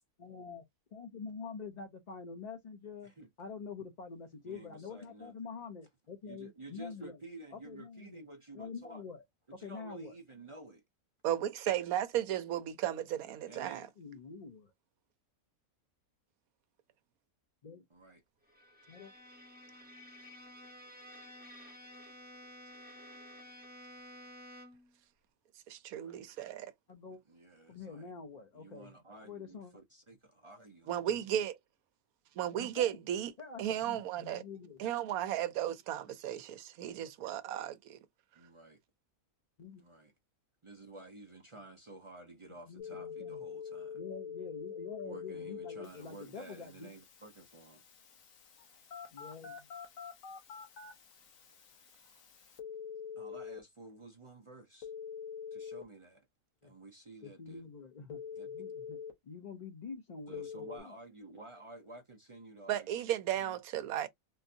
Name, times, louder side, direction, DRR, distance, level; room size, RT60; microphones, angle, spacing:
voice 1, 0.2-0.6 0.9-3.1 3.4-7.2 7.6-8.2 8.5-9.2 9.6-10.1 14.0-14.7 17.6-17.8 18.9-19.1 26.9-27.2 27.7-28.9 29.2-29.7 31.1-31.2 32.6-33.0 33.4-34.9 39.6-39.8 42.7-43.4 43.9-46.9 48.6-48.7 49.1-49.7 56.6-56.7 57.2-59.0 59.2-61.0 63.4-63.5, left 5 dB, 45° left, 0.5 m, -46 dB
voice 2, 4.4-5.3 6.2-9.0 9.5-10.8 13.5-13.8 17.9-18.2 25.9-26.2 27.3-28.1 28.5-31.0 38.3-38.8 39.8-40.1 40.6-44.0 45.0-47.8 53.2-54.9 55.5-56.3 56.6-57.7 58.3-58.7 60.3-63.0, right 2 dB, 55° right, 0.3 m, -52 dB
voice 3, 11.2-13.9 25.7-26.7 30.9-31.6 32.4-33.3 33.6-34.4 34.8-38.0 62.7-64.1, right 11 dB, 85° right, 1.1 m, -34 dB
Bowed string instrument, 18.5-24.9, equal, 10° right, 0.6 m, -52 dB
Telephone, 42.8-53.6 54.8-55.8 58.1-59.1 60.3-60.8, left 7 dB, 70° left, 1.3 m, -45 dB
3.7 x 2.6 x 2.7 m
omnidirectional pair, 1.5 m